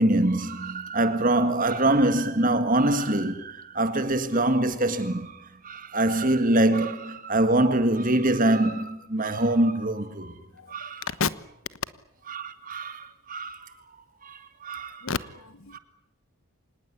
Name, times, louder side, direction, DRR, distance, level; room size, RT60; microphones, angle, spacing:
voice 1, 0.0-10.3 10.7-11.0 12.3-13.7 14.2-15.1 15.7-15.8, right 1 dB, 35° right, 1.9 m, -24 dB
voice 2, 10.6-11.3 15.0-15.8, left 5 dB, 65° left, 1.2 m, -31 dB
25.5 x 19.5 x 10.0 m
head